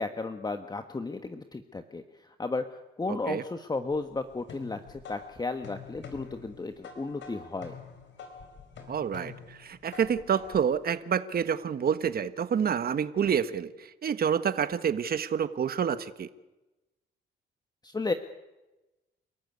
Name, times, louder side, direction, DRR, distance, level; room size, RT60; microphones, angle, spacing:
voice 1, 0.0-2.0 2.4-2.6 3.0-7.7 17.8-18.1, left 3 dB, 20° left, 7 dB, 1.3 m, -33 dB
voice 2, 3.1-3.4 8.9-16.3, right 7 dB, 50° right, 12 dB, 1.4 m, -28 dB
sound 1, 3.9-10.8, left 5 dB, 65° left, 4.5 m, -47 dB
29.5 x 14.0 x 9.6 m, 1.1 s
cardioid pair, 90°, 20 cm